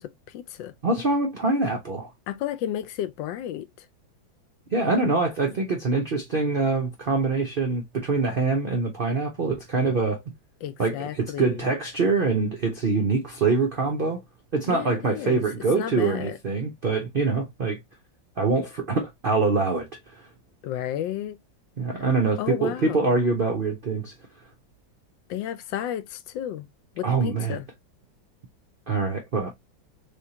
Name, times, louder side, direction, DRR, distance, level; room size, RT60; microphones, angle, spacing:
voice 1, 0.0-0.7 2.3-3.7 10.6-11.7 14.7-15.4 15.7-16.4 20.6-21.4 22.0-22.1 22.4-23.1 25.3-26.7 27.0-27.7, left 11 dB, 80° left, 1.3 m, -32 dB
voice 2, 0.8-2.1 4.7-10.2 10.8-14.2 14.5-17.8 18.4-20.2 21.8-24.1 27.0-27.6 28.9-29.5, right 3 dB, 65° right, 0.5 m, -24 dB
3.5 x 3.4 x 2.7 m
omnidirectional pair, 2.1 m